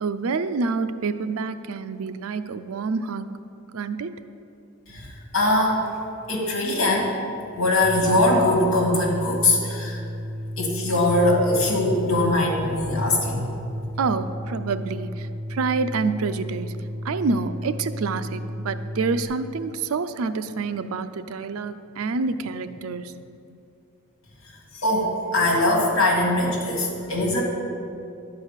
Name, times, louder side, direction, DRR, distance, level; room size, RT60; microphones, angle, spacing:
voice 1, 0.0-3.3 3.7-4.2 14.0-16.8 17.0-23.2, right 4 dB, 80° right, 12 dB, 0.5 m, -27 dB
voice 2, 4.9-5.8 6.3-7.1 7.6-10.0 10.6-13.6 24.7-27.4, left 1 dB, 65° left, -1 dB, 2.1 m, -21 dB
sound 1, 7.8-19.2, equal, 50° right, 2.1 m, -33 dB
11.5 x 4.9 x 7.3 m, 2.6 s
head